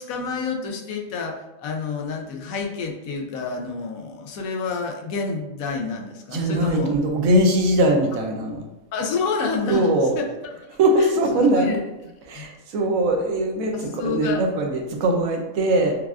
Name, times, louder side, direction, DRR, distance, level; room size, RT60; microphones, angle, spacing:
voice 1, 0.0-6.9 8.9-10.7 11.0-11.8 12.3-12.4 13.7-14.4, left 4 dB, 85° left, 2 dB, 1.1 m, -28 dB
voice 2, 6.3-8.6 9.7-10.1 10.8-11.7 12.3-15.9, right 1 dB, 85° right, 2 dB, 1.1 m, -21 dB
6.3 x 2.3 x 2.4 m, 0.96 s
omnidirectional pair, 1.4 m